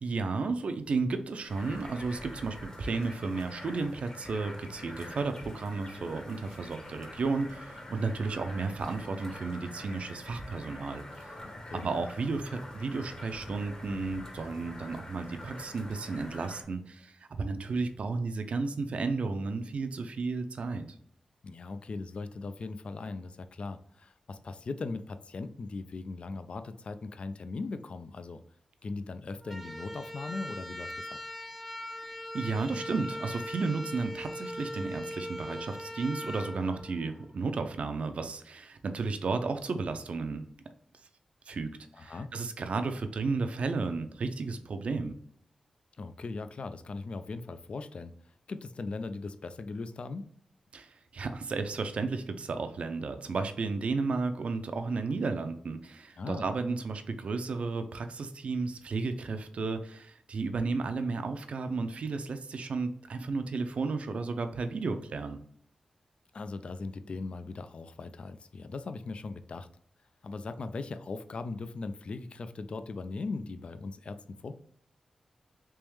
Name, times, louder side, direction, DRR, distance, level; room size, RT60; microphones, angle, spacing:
voice 1, 0.0-11.3 11.7-20.9 32.0-40.5 41.5-41.7 42.0-45.1 50.7-65.4, right 4 dB, 65° right, 8 dB, 0.5 m, -33 dB
sound 1, 1.5-16.6, left 1 dB, 30° left, 1.1 m, -45 dB
voice 2, 11.4-11.9 21.4-28.4 28.8-31.2 41.9-42.3 46.0-48.1 48.5-50.3 56.2-56.4 66.3-69.7 70.2-74.5, left 3 dB, 55° left, 10 dB, 0.3 m, -39 dB
sound 2, 29.4-37.6, equal, ahead, 0.5 m, -40 dB
3.4 x 3.0 x 3.1 m, 0.65 s
cardioid pair, 70°, 2 cm